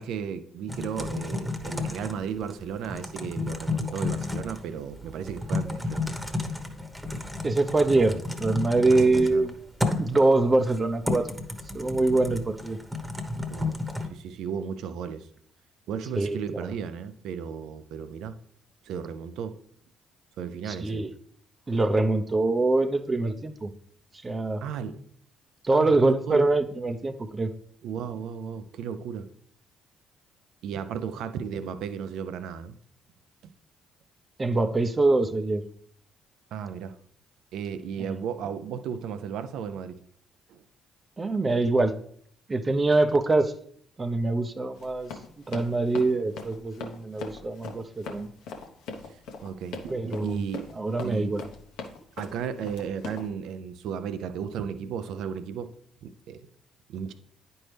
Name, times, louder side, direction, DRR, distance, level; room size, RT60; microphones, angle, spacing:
voice 1, 0.0-6.1 8.9-9.4 13.5-13.8 14.1-15.3 15.9-18.4 18.8-19.6 20.4-21.1 24.6-25.0 25.7-26.4 27.8-29.3 30.6-32.8 33.4-33.5 36.5-37.0 37.5-40.0 40.5-40.6 49.4-50.7 51.0-51.3 52.2-55.7 56.0-56.4 56.9-57.1, right 7 dB, 70° right, 11 dB, 0.5 m, -34 dB
Typing, 0.7-14.1, left 2 dB, 5° right, 1.2 m, -32 dB
voice 2, 7.4-9.5 10.0-11.3 11.7-12.8 16.1-16.7 20.7-21.1 21.7-23.7 24.2-24.6 25.6-27.5 34.4-35.6 38.0-38.2 41.2-41.9 42.5-43.5 44.0-48.3 49.9-50.4 50.8-51.4, right 2 dB, 30° right, 8 dB, 0.7 m, -24 dB
Run, 44.7-53.3, left 4 dB, 75° left, 0.9 m, -40 dB
9.5 x 4.4 x 3.3 m, 0.64 s
hypercardioid pair, 50°, 0 cm